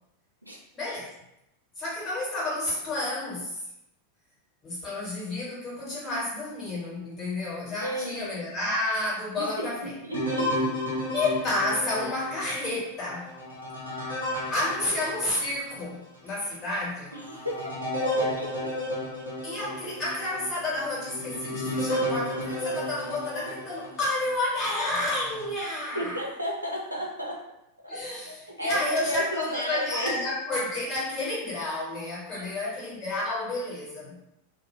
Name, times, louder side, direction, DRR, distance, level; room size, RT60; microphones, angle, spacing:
voice 1, 0.7-1.1 1.8-3.6 4.6-9.9 11.1-13.3 14.5-17.1 19.4-26.2 27.9-34.2, left 2 dB, 25° left, -5 dB, 1.1 m, -30 dB
voice 2, 7.8-8.4 9.4-10.6 17.1-18.8 25.9-27.5 27.8-30.2 32.3-32.7, equal, 85° right, -1 dB, 0.5 m, -34 dB
sound 1, 10.1-15.9 16.4-16.5 17.1-24.3 24.9-25.5, equal, 80° left, 0.9 m, -32 dB
2.1 x 2.1 x 3.2 m, 0.83 s
figure-of-eight pair, 90°, 0 cm